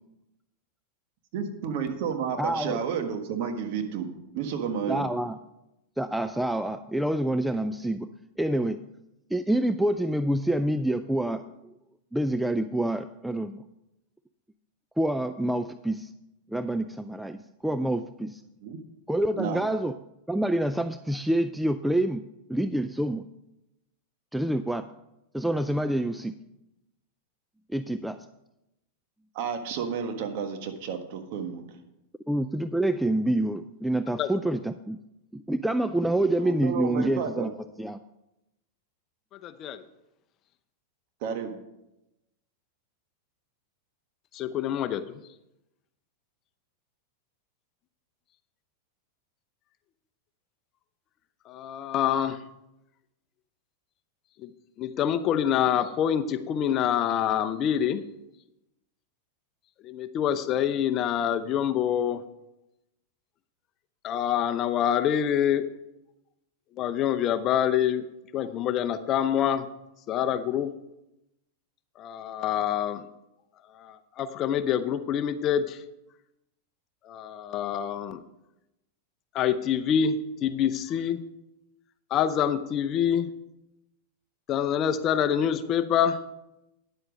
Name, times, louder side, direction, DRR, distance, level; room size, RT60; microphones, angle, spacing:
voice 1, 1.3-4.1 4.3-5.1 18.6-18.8 19.4-19.6 29.3-31.7 36.4-37.5 41.2-41.6, right 7 dB, 60° right, 6 dB, 1.4 m, -31 dB
voice 2, 2.4-2.8 4.9-5.4 6.0-8.1 8.4-8.8 9.3-11.7 12.1-13.6 15.0-16.1 16.5-18.4 19.1-19.9 20.3-22.2 22.5-23.3 24.3-24.8 25.3-26.3 27.7-28.2 32.3-35.0 35.3-37.5 37.8-38.0, right 1 dB, 5° right, 11 dB, 0.4 m, -27 dB
voice 3, 39.4-39.8 44.3-45.2 51.5-52.4 54.8-58.0 59.8-62.2 64.0-65.7 66.8-68.1 68.3-69.7 70.1-70.7 72.0-73.1 73.8-75.8 77.1-78.2 79.3-81.2 82.1-83.3 84.5-86.2, left 9 dB, 40° left, 10 dB, 0.7 m, -26 dB
10.0 x 8.0 x 5.2 m, 0.90 s
hypercardioid pair, 110°, 0 cm